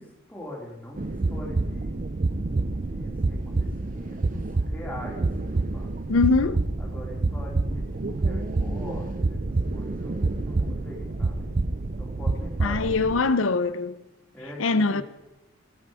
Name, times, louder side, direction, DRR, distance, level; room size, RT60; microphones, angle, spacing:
voice 1, 0.0-2.0 2.7-4.2 4.6-5.2 5.5-5.9 6.8-9.4 9.7-11.5 12.0-13.3 14.3-14.6 14.9-15.0, left 1 dB, 10° left, 3.1 m, -42 dB
sound 1, 1.0-13.2, right 3 dB, 40° right, 0.5 m, -28 dB
voice 2, 6.1-6.6 12.6-13.9 14.6-15.0, left 3 dB, 80° left, 0.7 m, -22 dB
17.5 x 7.9 x 4.9 m
head